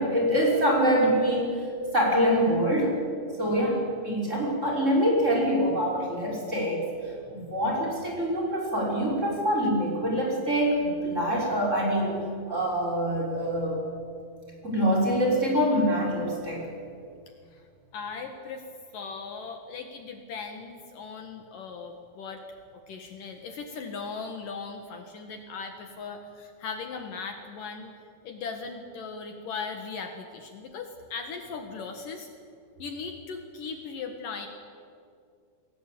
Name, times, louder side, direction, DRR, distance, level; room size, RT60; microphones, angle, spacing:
voice 1, 0.0-3.0 3.4-13.9 14.6-16.7, equal, 20° right, -1 dB, 6.1 m, -25 dB
voice 2, 17.9-18.6 18.9-22.4 22.7-28.0 28.2-32.3 32.8-34.5, left 5 dB, 65° left, 5 dB, 3.2 m, -38 dB
29.0 x 21.5 x 8.7 m, 2.3 s
omnidirectional pair, 4.4 m